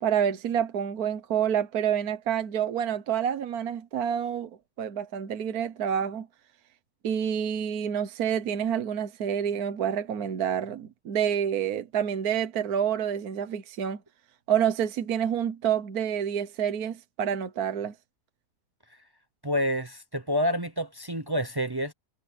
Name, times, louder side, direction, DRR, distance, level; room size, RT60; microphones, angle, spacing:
voice 1, 0.0-4.5 4.8-6.3 7.0-14.0 14.5-17.9, right 8 dB, 70° right, 1.5 m, -28 dB
voice 2, 19.4-21.9, equal, 25° right, 0.5 m, -28 dB
omnidirectional pair, 1.7 m